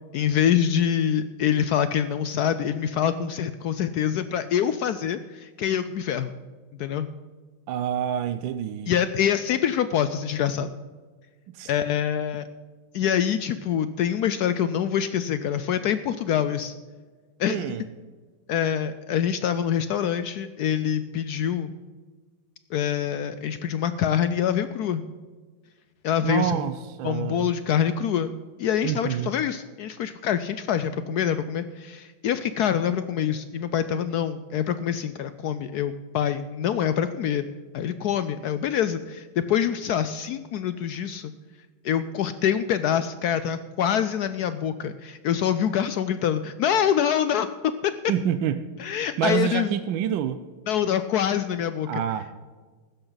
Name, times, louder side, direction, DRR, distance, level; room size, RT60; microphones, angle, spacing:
voice 1, 0.1-6.3 6.8-7.1 8.9-10.7 11.6-12.5 12.9-16.7 17.4-17.6 18.5-21.7 22.7-25.0 26.0-26.6 27.0-28.3 28.6-37.4 37.7-41.3 41.8-47.9 48.8-49.7 50.7-52.0, left 9 dB, 80° left, 12 dB, 0.8 m, -25 dB
voice 2, 7.7-9.0 11.5-11.7 17.5-17.9 26.2-27.5 28.8-29.3 48.1-48.7 49.2-50.4 51.9-52.4, right 10 dB, 75° right, 10 dB, 1.3 m, -27 dB
15.5 x 12.5 x 4.0 m, 1.4 s
omnidirectional pair, 2.2 m